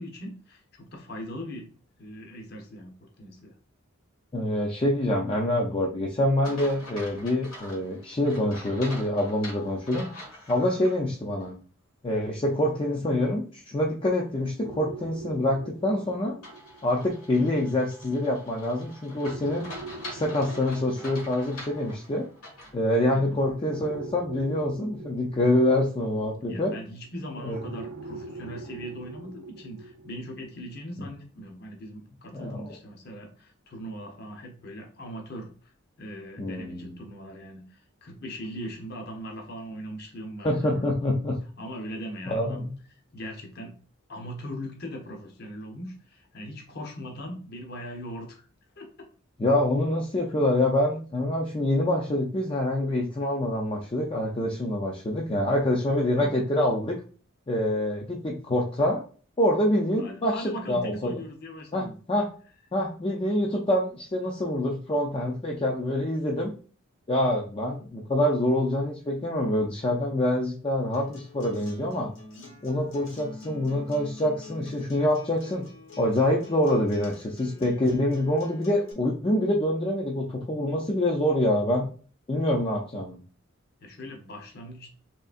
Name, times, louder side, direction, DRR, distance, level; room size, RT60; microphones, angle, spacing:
voice 1, 0.0-1.7 2.0-3.5 23.1-23.5 26.5-35.7 36.0-40.8 41.6-42.7 43.1-43.7 44.1-48.4 48.8-49.1 56.2-56.3 60.0-61.9 83.8-84.9, equal, 50° left, 2 dB, 0.8 m, -40 dB
voice 2, 4.3-10.1 10.5-11.5 12.0-16.4 16.8-19.7 20.1-22.3 22.7-26.7 27.4-27.6 31.0-31.1 32.3-32.7 36.4-37.0 40.4-41.4 42.3-42.7 49.4-57.0 57.5-59.0 59.4-61.1 61.7-62.3 62.7-66.5 67.1-72.1 72.6-75.7 76.0-81.9 82.3-83.2, left 1 dB, 25° left, -1 dB, 0.4 m, -26 dB
sound 1, 6.4-11.0 11.4-11.5 16.4-22.8, left 1 dB, 90° left, 1.6 m, -44 dB
sound 2, 14.6-17.6 19.2-22.5 23.7-26.9 27.5-30.8, right 3 dB, 80° right, 0.5 m, -43 dB
Acoustic guitar, 70.9-78.9, left 3 dB, 70° left, 1.1 m, -46 dB
3.7 x 3.2 x 2.5 m, 0.40 s
head